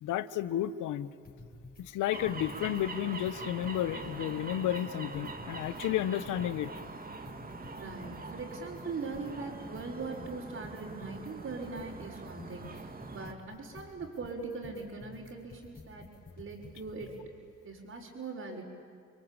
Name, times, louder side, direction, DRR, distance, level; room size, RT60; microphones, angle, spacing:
voice 1, 0.0-1.1 1.8-6.7, left 12 dB, 85° left, 14 dB, 1.1 m, -32 dB
sound 1, 1.2-1.8 2.1-2.8 3.1-5.8 6.1-17.3, left 3 dB, 30° left, 5.3 m, -52 dB
sound 2, 2.1-13.3, right 3 dB, 30° right, 2.1 m, -43 dB
voice 2, 7.7-16.1 16.4-17.2 17.6-18.6, right 3 dB, 50° right, -6 dB, 5.2 m, -41 dB
29.5 x 22.5 x 9.0 m, 2.4 s
cardioid pair, 90°, 30 cm